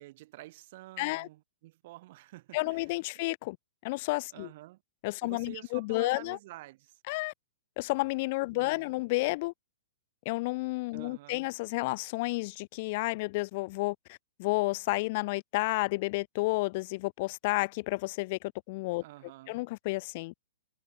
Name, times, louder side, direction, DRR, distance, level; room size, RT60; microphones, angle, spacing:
voice 1, 0.0-3.2 4.3-4.8 5.2-7.0 8.5-9.0 10.9-11.5 19.0-19.6, right 18 dB, 40° right, 1.9 m, -49 dB
voice 2, 1.0-1.3 2.5-3.6 3.8-4.5 5.0-6.4 7.1-7.3 7.8-9.5 10.2-19.0 19.5-20.3, left 23 dB, 35° left, 0.7 m, -31 dB
hypercardioid pair, 170°, 0 cm